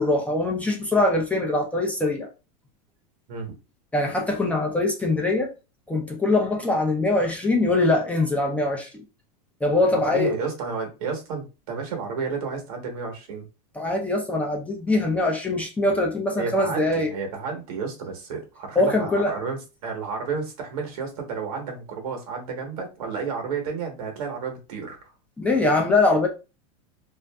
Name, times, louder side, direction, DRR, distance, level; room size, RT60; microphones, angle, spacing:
voice 1, 0.0-2.3 3.9-5.5 5.9-9.0 9.6-10.3 13.8-17.1 18.8-19.3 25.4-26.3, left 2 dB, 5° left, 0.5 m, -22 dB
voice 2, 9.9-13.5 16.4-25.0, right 5 dB, 70° right, 1.1 m, -31 dB
2.5 x 2.5 x 2.2 m
supercardioid pair, 135°, 19 cm